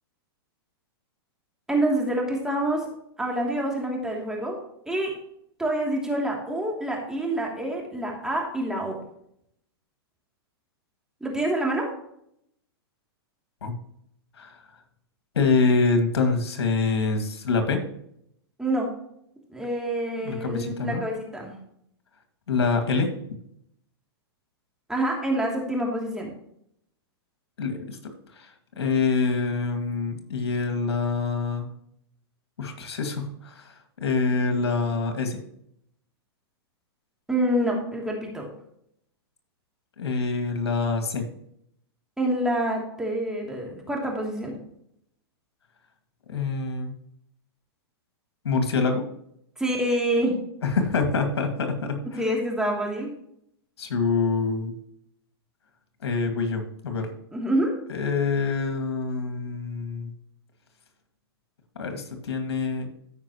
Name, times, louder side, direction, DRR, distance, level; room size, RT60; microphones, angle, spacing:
voice 1, 1.7-2.9 3.2-5.2 5.6-9.0 11.2-11.9 18.6-18.9 19.5-21.5 24.9-26.3 37.3-38.5 42.2-44.6 49.6-50.4 52.2-53.1 57.3-57.7, right 1 dB, 5° right, -1 dB, 2.9 m, -27 dB
voice 2, 15.3-17.8 20.2-21.0 22.5-23.1 27.6-28.0 28.3-31.7 32.6-33.7 34.0-35.4 40.0-41.2 46.3-46.9 48.4-49.0 50.6-52.2 53.8-54.7 56.0-57.1 57.9-60.1 61.8-62.9, left 4 dB, 85° left, 5 dB, 2.3 m, -25 dB
15.0 x 5.7 x 3.1 m, 0.72 s
hypercardioid pair, 130°, 13 cm